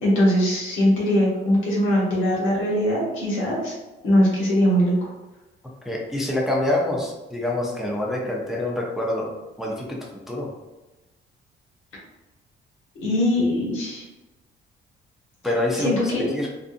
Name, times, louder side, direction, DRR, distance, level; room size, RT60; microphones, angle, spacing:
voice 1, 0.0-3.7 4.0-4.9 13.0-14.0 15.8-16.3, equal, 85° left, -5 dB, 1.1 m, -21 dB
voice 2, 5.8-10.5 15.4-16.5, left 1 dB, ahead, -3 dB, 0.6 m, -26 dB
2.5 x 2.5 x 2.5 m, 1.1 s
cardioid pair, 90°, 20 cm